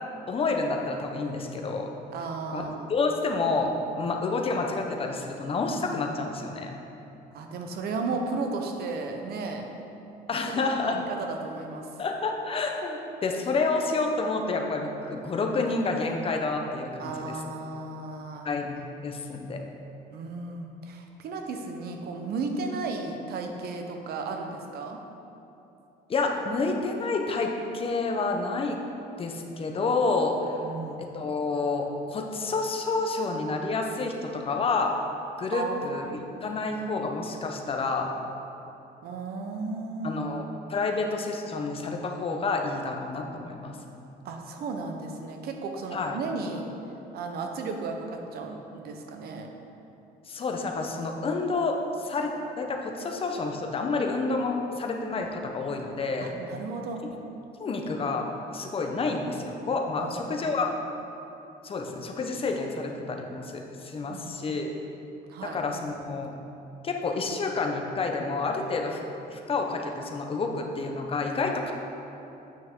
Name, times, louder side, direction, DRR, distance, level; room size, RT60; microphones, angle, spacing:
voice 1, 0.3-1.9 2.5-6.8 10.3-11.0 12.0-17.4 18.4-19.6 26.1-28.8 29.2-30.4 31.0-34.9 35.4-38.1 40.0-43.8 45.9-46.2 50.3-52.3 52.6-56.3 57.6-58.3 58.5-60.7 61.6-64.7 65.4-66.3 66.8-69.0 69.3-71.7, left 3 dB, 35° left, 3 dB, 0.8 m, -29 dB
voice 2, 2.1-2.9 7.3-9.7 10.4-10.5 10.8-11.9 17.0-18.5 20.1-25.0 30.6-31.0 35.5-36.0 39.0-40.2 44.2-46.7 47.1-48.1 48.3-49.5 56.2-57.0 60.0-60.5 64.1-64.6 65.3-65.6, right 3 dB, 65° right, 4 dB, 0.9 m, -34 dB
8.6 x 5.8 x 3.7 m, 2.9 s
cardioid pair, 110°, 17 cm